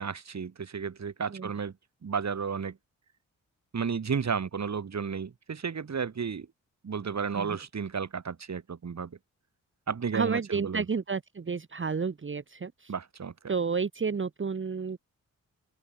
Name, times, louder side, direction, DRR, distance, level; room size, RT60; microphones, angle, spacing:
voice 1, 0.0-1.7 2.0-2.8 3.7-6.5 6.8-9.2 9.9-10.8 12.9-13.3, right 6 dB, 50° right, 2.0 m, -32 dB
voice 2, 10.1-12.9 13.5-15.0, right 5 dB, 35° right, 1.2 m, -31 dB
open air
cardioid pair, 50°, 34 cm